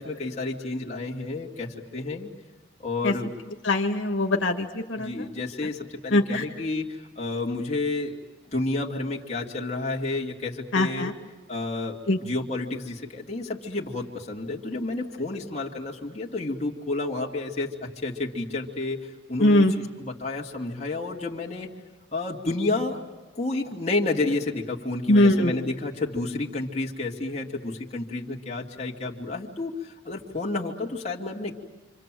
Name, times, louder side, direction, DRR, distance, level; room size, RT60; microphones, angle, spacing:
voice 1, 0.0-2.3 2.8-3.3 4.9-8.1 8.5-11.1 11.5-21.7 22.1-23.0 23.3-31.5, left 2 dB, 35° left, -2 dB, 2.7 m, -30 dB
voice 2, 3.6-5.3 6.1-6.4 10.7-11.1 12.1-12.2 19.4-19.7 25.1-25.6, left 1 dB, 75° left, 3 dB, 1.9 m, -21 dB
29.5 x 26.0 x 7.7 m, 1.2 s
head